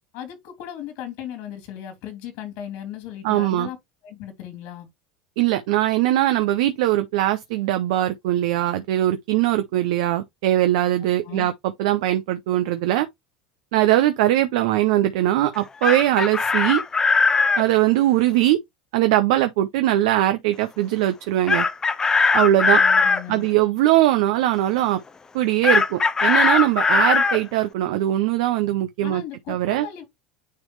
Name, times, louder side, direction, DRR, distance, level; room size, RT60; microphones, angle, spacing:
voice 1, 0.1-3.8 4.0-4.9 11.2-11.5 22.7-23.5 29.0-30.0, left 10 dB, 65° left, 3.0 m, -36 dB
voice 2, 3.2-3.7 5.4-13.1 13.7-16.8 17.6-18.6 18.9-21.7 22.3-22.8 23.3-25.0 25.3-29.2 29.5-29.9, right 14 dB, 70° right, 0.7 m, -21 dB
Chicken rooster, 15.6-17.6 21.5-23.2 25.6-27.4, left 4 dB, 20° left, 0.7 m, -19 dB
9.5 x 3.3 x 3.2 m
hypercardioid pair, 95°, 3 cm